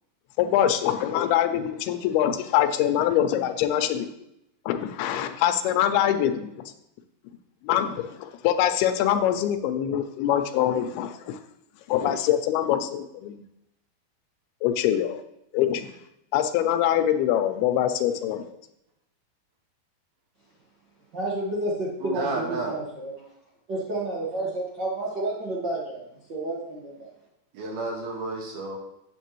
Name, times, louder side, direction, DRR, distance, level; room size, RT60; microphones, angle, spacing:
voice 1, 0.4-4.1 4.7-6.6 7.6-11.4 11.9-13.4 14.6-15.2 15.5-15.9 16.3-18.5, left 11 dB, 85° left, 9 dB, 2.6 m, -24 dB
voice 2, 21.1-23.1 23.7-26.0 26.3-27.1, right 2 dB, 50° right, -6 dB, 1.3 m, -30 dB
voice 3, 22.0-22.8 27.5-28.8, right 2 dB, 80° right, 0 dB, 3.4 m, -31 dB
8.5 x 8.2 x 3.1 m, 0.83 s
omnidirectional pair, 4.4 m